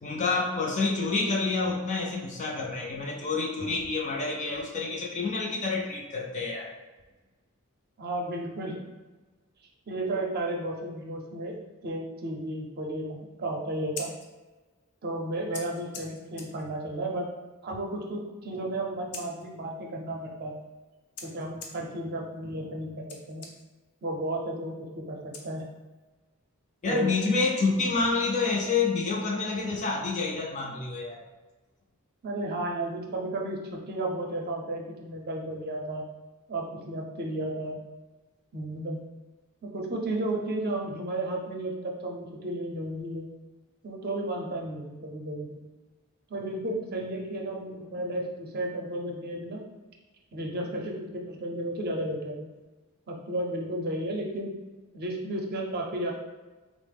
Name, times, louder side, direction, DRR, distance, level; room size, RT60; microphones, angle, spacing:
voice 1, 0.0-6.7 26.8-31.3, left 4 dB, 35° left, -1 dB, 0.4 m, -28 dB
voice 2, 8.0-8.8 9.9-11.6 11.8-14.1 15.0-17.3 17.6-20.6 21.2-23.5 24.0-25.7 26.9-27.1 32.2-36.0 36.5-37.8 38.5-39.0 39.6-43.3 43.8-45.6 46.3-49.6 50.3-52.5 53.1-54.5 54.9-56.1, right 1 dB, 45° right, 0 dB, 0.6 m, -33 dB
Scissors, 13.7-26.1, left 4 dB, 85° left, 0.6 m, -49 dB
3.9 x 2.0 x 3.4 m, 1.2 s
head